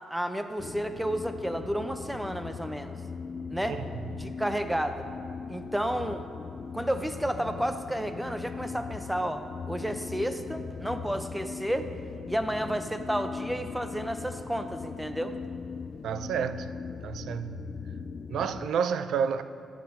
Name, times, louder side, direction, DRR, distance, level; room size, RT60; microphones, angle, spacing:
voice 1, 0.1-3.0 3.5-3.8 4.2-5.1 5.5-6.3 6.7-11.9 12.3-15.3, right 1 dB, 5° right, 0.7 m, -31 dB
sound 1, 0.6-18.7, left 5 dB, 45° left, 0.3 m, -39 dB
voice 2, 16.0-16.7 17.0-17.7 18.3-19.4, right 7 dB, 75° right, 0.4 m, -30 dB
10.5 x 7.4 x 5.7 m
cardioid pair, 100°, 0 cm